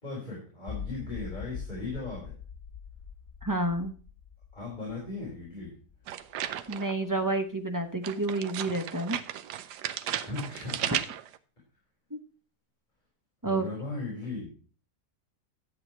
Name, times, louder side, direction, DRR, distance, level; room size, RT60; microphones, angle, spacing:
voice 1, 0.0-2.3 4.5-5.7 10.2-11.0 13.4-14.5, left 3 dB, 25° left, -4 dB, 3.8 m, -37 dB
sound 1, 0.7-6.8, left 7 dB, 45° left, 1.3 m, -43 dB
voice 2, 3.4-3.9 6.7-9.2 12.1-12.2 13.4-13.6, right 2 dB, 25° right, 5 dB, 0.4 m, -29 dB
sound 2, 6.1-7.0 8.0-11.4, right 11 dB, 75° right, 1.3 m, -35 dB
11.0 x 8.0 x 4.3 m, 0.39 s
omnidirectional pair, 1.8 m